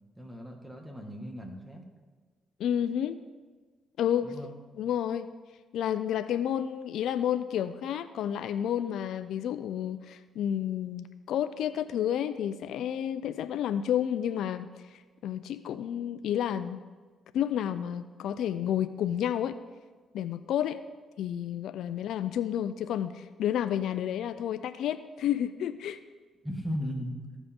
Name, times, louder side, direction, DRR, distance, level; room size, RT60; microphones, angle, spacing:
voice 1, 0.2-1.8 4.2-4.5 26.4-27.2, equal, 5° right, 2 dB, 1.8 m, -37 dB
voice 2, 2.6-3.2 4.0-4.3 4.8-5.3 5.7-16.8 17.3-19.6 20.1-20.8 21.2-26.0, left 10 dB, 75° left, 12 dB, 0.3 m, -30 dB
15.0 x 5.0 x 3.6 m, 1.4 s
supercardioid pair, 65°, 0 cm